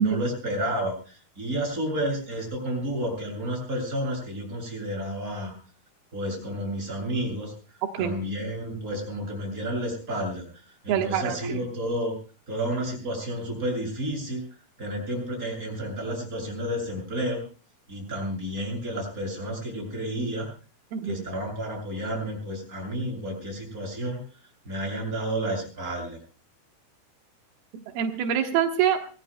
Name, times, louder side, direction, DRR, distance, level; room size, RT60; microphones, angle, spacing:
voice 1, 0.0-5.5 6.1-7.5 8.0-10.4 10.8-12.1 12.5-14.4 14.8-17.4 17.9-20.5 21.0-24.2 24.7-26.2, right 1 dB, 20° right, 0 dB, 7.7 m, -31 dB
voice 2, 10.9-11.6 20.9-21.2 27.9-29.0, right 9 dB, 85° right, 4 dB, 3.3 m, -25 dB
24.5 x 19.5 x 2.2 m, 0.37 s
omnidirectional pair, 4.3 m